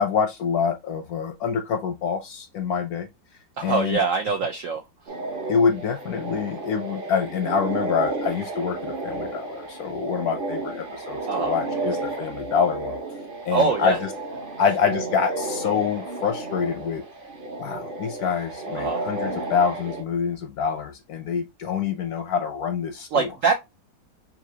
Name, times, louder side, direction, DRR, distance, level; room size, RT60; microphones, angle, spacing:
voice 1, 0.0-3.1 3.6-4.0 5.5-13.0 13.4-14.0 14.6-17.0 17.6-23.3, left 6 dB, 70° left, 0.9 m, -26 dB
voice 2, 3.6-4.8 11.2-11.5 13.5-14.0 18.8-19.0 23.1-23.5, right 5 dB, 75° right, 0.7 m, -23 dB
sound 1, 5.1-20.0, right 2 dB, 40° right, 0.8 m, -32 dB
5.7 x 2.6 x 2.7 m
omnidirectional pair, 2.0 m